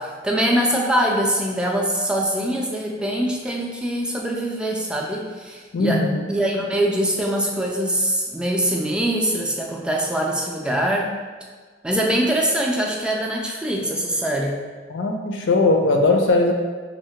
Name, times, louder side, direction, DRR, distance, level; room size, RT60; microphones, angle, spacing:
voice 1, 0.0-6.0 6.3-11.1 11.8-14.6, right 1 dB, 5° right, -1 dB, 0.3 m, -23 dB
voice 2, 5.7-6.2 14.9-16.5, left 2 dB, 85° left, 3 dB, 0.5 m, -19 dB
5.5 x 2.0 x 3.1 m, 1.5 s
head